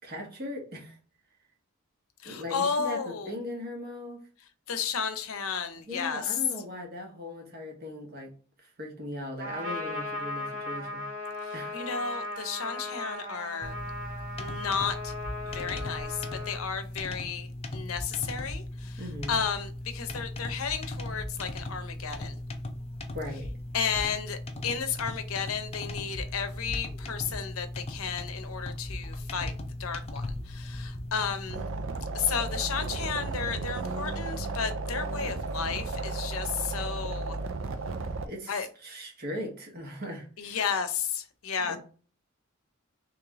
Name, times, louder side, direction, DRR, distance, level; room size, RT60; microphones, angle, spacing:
voice 1, 0.0-0.9 2.2-4.2 5.8-8.3 8.8-11.0 11.5-11.8 19.0-19.4 23.1-23.5 38.2-40.6 41.6-41.8, left 1 dB, 45° right, 1.2 m, -39 dB
voice 2, 2.2-3.4 4.7-6.4 11.4-13.7 14.4-15.1 15.5-19.0 19.3-22.4 23.7-29.5 29.8-31.6 32.1-37.4 38.5-38.7 40.4-41.8, left 6 dB, 90° left, 0.7 m, -33 dB
Trumpet, 9.4-16.6, left 2 dB, 85° right, 2.0 m, -37 dB
sound 1, 13.6-31.5, left 1 dB, 30° left, 0.5 m, -38 dB
sound 2, 31.5-38.3, right 3 dB, 70° right, 0.5 m, -34 dB
3.3 x 3.2 x 3.6 m
head